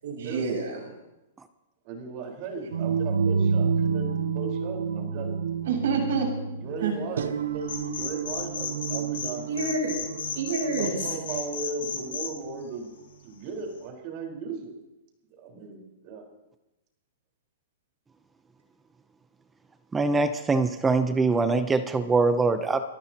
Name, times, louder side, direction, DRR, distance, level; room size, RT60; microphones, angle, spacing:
voice 1, 0.0-0.8 5.6-6.3 6.8-6.9 9.5-9.9 10.3-11.1, right 4 dB, 70° right, 0 dB, 6.6 m, -28 dB
voice 2, 1.8-5.3 6.6-9.4 10.8-12.9 13.2-14.7 15.4-16.2, right 4 dB, 45° right, 1 dB, 4.7 m, -36 dB
sound 1, 2.7-12.6, right 6 dB, 90° right, 0.8 m, -30 dB
sound 2, 7.6-9.3 9.6-12.3, left 7 dB, 75° left, 5.6 m, -33 dB
voice 3, 19.9-22.8, right 3 dB, 10° right, 10 dB, 0.8 m, -23 dB
25.5 x 13.5 x 3.0 m, 0.97 s
hypercardioid pair, 140°, 0 cm